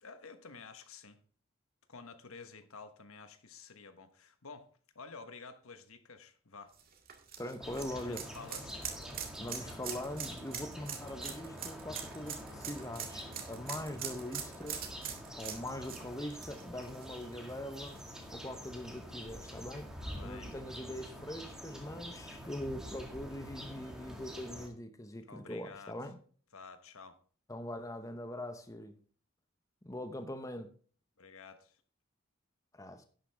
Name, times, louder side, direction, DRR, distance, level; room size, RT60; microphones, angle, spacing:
voice 1, 0.0-1.2 1.9-4.7 4.9-6.8 7.9-8.8 20.0-20.6 25.3-26.0 26.5-27.2 31.2-31.8, left 4 dB, 80° left, 1.3 m, -51 dB
sound 1, 6.7-17.5 17.9-18.0 19.4-19.5, right 8 dB, 45° right, 2.0 m, -43 dB
voice 2, 7.4-8.3 9.4-14.8 15.4-18.0 18.3-19.9 20.2-26.2 27.5-28.9 29.8-30.7 32.7-33.0, left 1 dB, 15° left, 0.9 m, -42 dB
sound 2, 7.6-24.7, equal, 5° right, 1.9 m, -46 dB
11.0 x 9.9 x 3.5 m
head